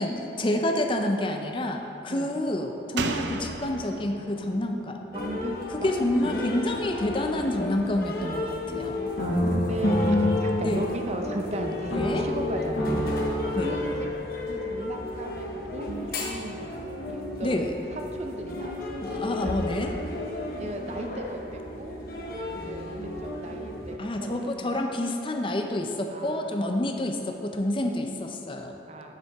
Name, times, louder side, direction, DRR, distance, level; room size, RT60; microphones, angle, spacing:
voice 1, 0.0-5.0 5.8-9.1 10.6-10.9 11.9-12.3 13.5-13.7 17.4-17.7 19.0-19.9 24.0-28.7, left 1 dB, 30° left, 4 dB, 0.5 m, -28 dB
Slam, 3.0-6.4 6.7-6.8, right 4 dB, 75° right, 0.5 m, -36 dB
sound 1, 5.1-24.0, left 2 dB, 50° left, 0.9 m, -34 dB
voice 2, 5.1-5.9 8.8-13.0 13.6-14.1 14.5-16.8 17.1-19.6 20.6-22.1 22.5-24.9 26.1-26.7 28.9-29.1, right 1 dB, 35° right, 3 dB, 0.6 m, -37 dB
sound 2, 9.2-11.5 11.9-14.2, left 1 dB, 80° left, 1.9 m, -27 dB
9.4 x 7.4 x 3.5 m, 2.9 s
head